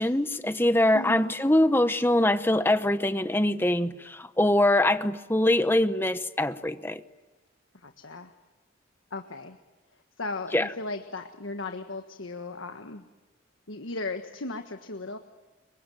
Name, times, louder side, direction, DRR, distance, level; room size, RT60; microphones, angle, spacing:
voice 1, 0.0-3.9 4.4-7.0 10.5-10.7, left 1 dB, 10° left, 11 dB, 1.0 m, -23 dB
voice 2, 0.9-1.3 7.8-8.3 9.1-9.6 10.2-13.0 13.7-15.2, left 3 dB, 90° left, 6 dB, 1.5 m, -36 dB
26.5 x 24.0 x 9.2 m, 1.1 s
head